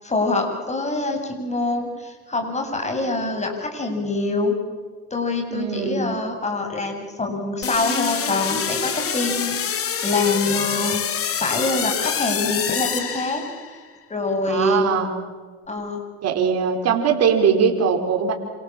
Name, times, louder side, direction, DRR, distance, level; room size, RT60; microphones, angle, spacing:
voice 1, 0.0-4.5 5.1-11.0 11.3-13.4 14.1-14.9 15.7-16.0, left 2 dB, 20° left, 4 dB, 7.6 m, -25 dB
voice 2, 5.5-6.0 14.5-15.1 16.2-18.3, right 6 dB, 50° right, 2 dB, 4.4 m, -20 dB
sound 1, 7.6-13.8, left 8 dB, 45° left, 3.5 m, -26 dB
28.5 x 27.5 x 7.5 m, 1.5 s
supercardioid pair, 95°, 32 cm